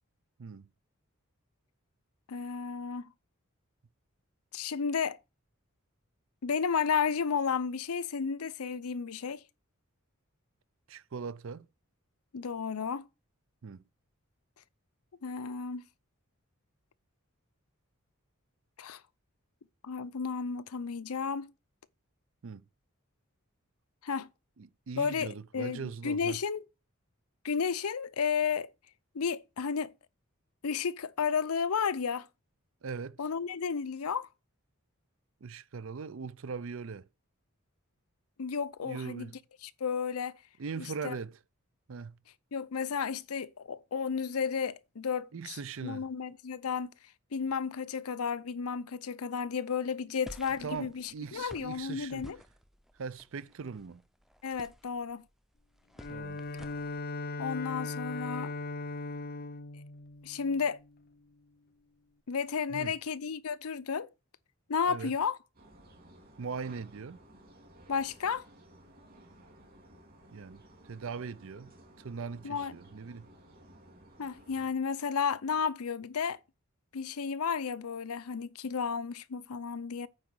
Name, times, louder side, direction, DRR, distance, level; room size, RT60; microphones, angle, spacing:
voice 1, 2.3-3.1 4.5-5.2 6.4-9.4 12.3-13.1 15.2-15.8 18.8-19.0 19.8-21.5 24.0-24.3 25.0-26.7 27.4-28.7 29.1-29.9 30.6-32.3 33.2-34.3 38.4-39.3 39.6-40.4 40.8-41.2 42.5-46.9 47.3-52.4 54.4-55.2 57.4-58.5 60.2-60.8 62.3-64.1 64.7-65.4 67.9-68.4 72.4-72.7 74.2-76.4 76.9-80.1, left 6 dB, 90° left, 0.6 m, -33 dB
voice 2, 10.9-11.7 13.6-13.8 22.4-22.6 24.6-26.4 32.8-33.2 35.4-37.1 38.8-39.3 40.6-41.4 41.9-42.2 45.3-46.1 50.6-52.3 53.0-54.0 56.1-56.4 62.7-63.0 64.9-65.1 66.4-67.2 70.3-71.7 72.0-73.3, right 5 dB, 65° right, 0.5 m, -40 dB
sound 1, 50.3-57.0, equal, ahead, 0.5 m, -53 dB
Bowed string instrument, 56.0-61.1, left 3 dB, 45° left, 0.5 m, -39 dB
sound 2, 65.5-74.7, right 1 dB, 45° right, 3.3 m, -56 dB
8.9 x 4.7 x 6.2 m
head